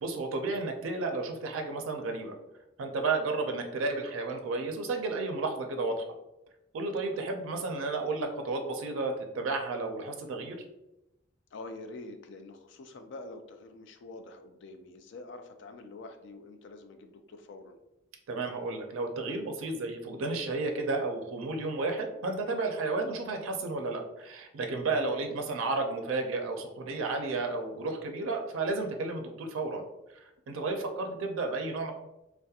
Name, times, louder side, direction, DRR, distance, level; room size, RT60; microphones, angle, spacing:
voice 1, 0.0-2.3 2.8-6.0 6.7-10.6 18.3-29.8 30.5-31.9, right 3 dB, 90° right, 4 dB, 0.4 m, -32 dB
voice 2, 7.0-7.4 11.5-17.8 24.9-25.1 30.7-31.0, left 2 dB, 60° left, 7 dB, 0.3 m, -46 dB
2.3 x 2.1 x 2.7 m, 0.91 s
head